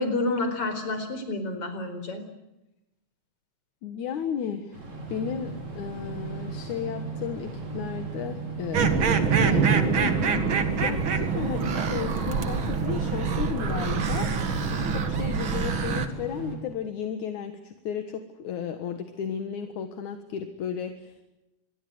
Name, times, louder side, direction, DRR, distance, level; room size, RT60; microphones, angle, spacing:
voice 1, 0.0-2.2, left 2 dB, 50° left, 8 dB, 5.5 m, -29 dB
voice 2, 3.8-4.8 5.1-10.4 10.8-14.3 14.7-21.2, left 8 dB, 75° left, 7 dB, 2.9 m, -34 dB
sound 1, 4.7-16.6, right 4 dB, 60° right, 6.9 m, -36 dB
sound 2, 8.7-16.1, right 5 dB, 45° right, 2.3 m, -25 dB
27.0 x 22.0 x 7.9 m, 0.95 s
omnidirectional pair, 3.5 m